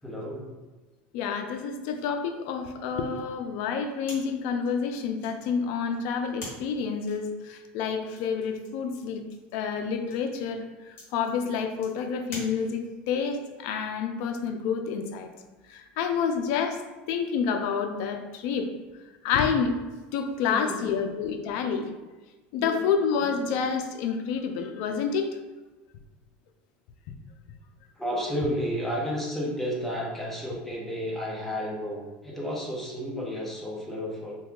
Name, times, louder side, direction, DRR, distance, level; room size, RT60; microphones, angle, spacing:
voice 1, 0.0-0.5 20.5-21.1 22.6-22.9 23.2-23.3 28.0-34.3, equal, 5° left, -4 dB, 0.8 m, -32 dB
voice 2, 1.1-9.2 9.5-15.3 15.7-16.8 17.1-18.7 19.2-19.7 20.1-21.9 22.5-25.3, left 6 dB, 70° left, 6 dB, 0.4 m, -28 dB
sound 1, 4.0-13.1, left 2 dB, 50° left, 1.5 m, -47 dB
2.8 x 2.2 x 3.6 m, 1.2 s
supercardioid pair, 120°, 5 cm